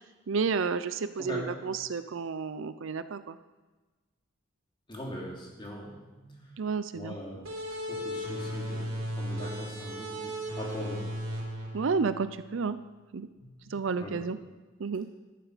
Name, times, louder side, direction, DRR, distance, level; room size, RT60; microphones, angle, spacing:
voice 1, 0.3-3.4 6.6-7.2 11.7-12.8 13.1-13.3 13.7-14.4 14.8-15.1, right 5 dB, 65° right, 13 dB, 0.5 m, -31 dB
voice 2, 4.9-5.9 6.2-6.3 6.9-7.4 7.9-11.0 13.4-13.5 14.0-14.2, equal, 25° left, -3 dB, 3.1 m, -40 dB
sound 1, 7.4-12.7, equal, 80° right, 3.4 m, -36 dB
13.0 x 11.0 x 5.0 m, 1.2 s
head